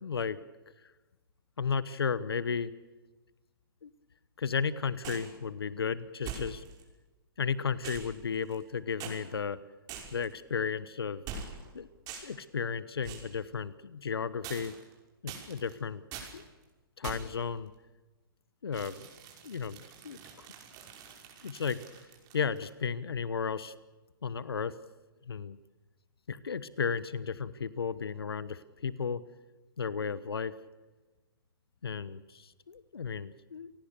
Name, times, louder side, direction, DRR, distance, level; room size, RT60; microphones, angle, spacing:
voice 1, 0.0-0.4 0.8-0.9 1.6-2.7 3.8-3.9 4.4-6.6 7.4-9.6 10.1-11.2 11.7-14.7 15.2-16.0 16.3-16.4 17.0-17.7 18.6-19.1 19.4-20.5 21.4-21.8 22.3-23.7 24.2-24.7 25.3-25.6 26.3-29.2 29.8-30.6 31.8-33.7, left 6 dB, 90° left, 16 dB, 1.1 m, -34 dB
sound 1, 5.0-5.4 6.2-6.8 7.8-8.7 9.0-9.2 9.9-10.3 11.3-11.7 12.1-12.4 13.0-13.3 14.4-14.9 15.3-15.7 16.1-16.4 17.0-17.4 18.7-22.7, right 7 dB, 30° right, 5.5 m, -44 dB
29.5 x 19.5 x 6.8 m, 1.2 s
hypercardioid pair, 130°, 12 cm